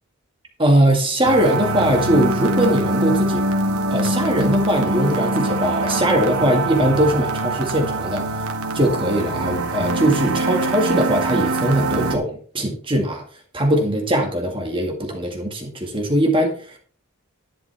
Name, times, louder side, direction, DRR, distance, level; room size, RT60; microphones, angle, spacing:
voice 1, 0.6-3.4 3.9-8.3 8.7-13.2 13.5-16.6, right 1 dB, 25° right, 2 dB, 2.0 m, -20 dB
sound 1, 1.2-12.2, right 2 dB, 85° right, 1.8 m, -23 dB
11.0 x 11.0 x 3.6 m, 0.43 s
head